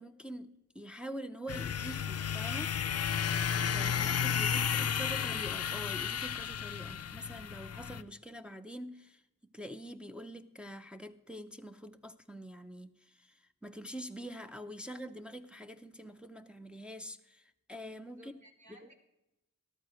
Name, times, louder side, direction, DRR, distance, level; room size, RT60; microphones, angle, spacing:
voice 1, 0.0-2.7 3.7-18.3 18.7-18.9, equal, 5° right, 0.5 m, -45 dB
sound 1, 1.5-8.0, left 8 dB, 50° left, 0.4 m, -33 dB
voice 2, 4.5-4.8 18.0-18.9, right 1 dB, 60° right, 1.9 m, -56 dB
13.5 x 12.5 x 3.0 m
wide cardioid pair, 95°, 31 cm